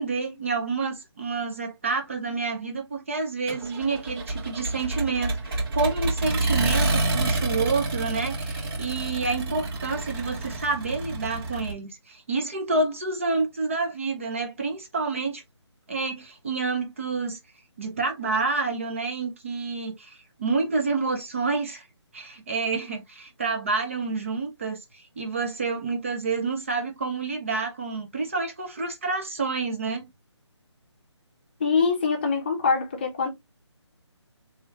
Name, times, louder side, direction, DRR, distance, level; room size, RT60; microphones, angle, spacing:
voice 1, 0.0-15.4 15.9-17.4 17.8-21.8 22.1-30.1, right 4 dB, 25° right, 0.7 m, -28 dB
Accelerating revving vroom, 3.5-11.7, right 2 dB, 50° right, 2.3 m, -28 dB
voice 2, 31.6-33.3, left 5 dB, 20° left, 0.8 m, -24 dB
3.4 x 3.4 x 2.8 m
hypercardioid pair, 170°, 15 cm